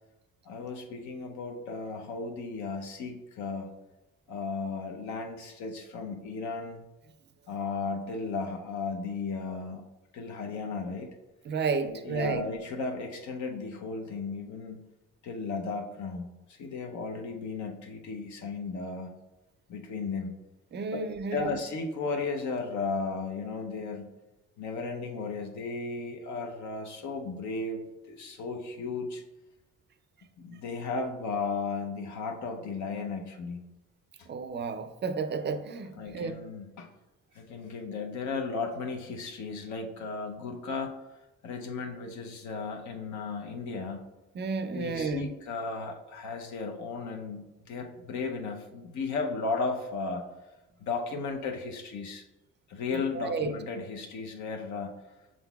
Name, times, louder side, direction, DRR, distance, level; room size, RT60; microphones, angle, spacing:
voice 1, 0.5-3.7 4.3-6.8 7.5-9.8 10.1-11.1 11.8-14.8 15.2-19.1 19.7-20.3 20.9-21.0 21.3-24.1 24.6-29.2 30.4-33.7 34.2-34.3 36.0-36.9 37.3-41.0 41.4-44.0 44.7-50.2 50.8-52.2 52.7-54.9, left 4 dB, 70° left, 3 dB, 0.7 m, -35 dB
voice 2, 11.4-12.4 20.7-21.6 34.3-36.3 44.3-45.3 52.9-53.5, right 4 dB, 35° right, 10 dB, 0.4 m, -32 dB
6.0 x 3.8 x 2.3 m, 0.99 s
cardioid pair, 90°, 30 cm